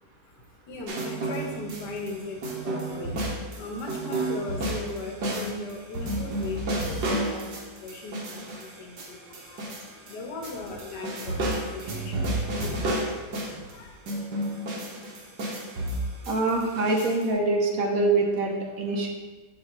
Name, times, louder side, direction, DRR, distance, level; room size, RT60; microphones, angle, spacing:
voice 1, 0.0-14.0, left 3 dB, 85° left, 2 dB, 1.7 m, -39 dB
sound 1, 0.9-2.1 2.4-10.2 10.4-13.7 14.1-17.2, right 1 dB, 75° right, 1.8 m, -31 dB
voice 2, 16.3-19.1, right 2 dB, 60° right, 1 dB, 1.4 m, -24 dB
7.0 x 5.1 x 4.2 m, 1.3 s
omnidirectional pair, 1.8 m